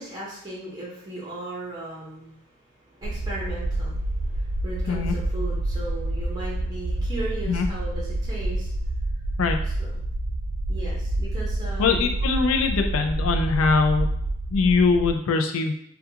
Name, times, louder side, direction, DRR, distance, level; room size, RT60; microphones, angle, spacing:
voice 1, 0.0-8.7 9.6-10.0 10.7-12.2, right 2 dB, 20° right, -6 dB, 0.6 m, -37 dB
sound 1, 3.0-15.1, right 1 dB, 70° right, 0.4 m, -28 dB
voice 2, 11.8-14.1 14.5-15.7, left 4 dB, 70° left, 5 dB, 0.3 m, -22 dB
2.3 x 2.3 x 2.7 m, 0.72 s
head